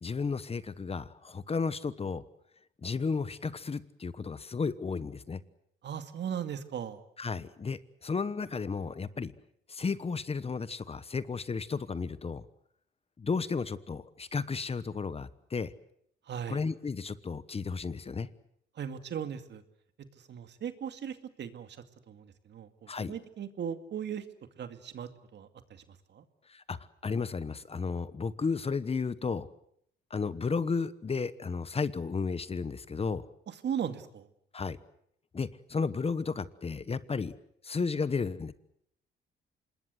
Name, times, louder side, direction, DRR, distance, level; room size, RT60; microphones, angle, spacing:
voice 1, 0.0-2.2 2.8-5.4 7.2-9.3 9.7-12.4 13.2-15.7 16.5-18.3 22.9-23.1 26.5-26.8 27.0-29.5 30.1-33.3 34.5-34.8 35.3-37.3 37.6-38.5, left 4 dB, 30° left, 16 dB, 1.1 m, -33 dB
voice 2, 5.8-7.0 16.3-16.6 18.8-19.6 20.3-21.8 22.1-24.2 24.6-25.8 26.1-26.2 33.5-34.3, right 8 dB, 60° right, 9 dB, 2.3 m, -38 dB
26.5 x 20.5 x 7.9 m, 0.70 s
cardioid pair, 90°, 20 cm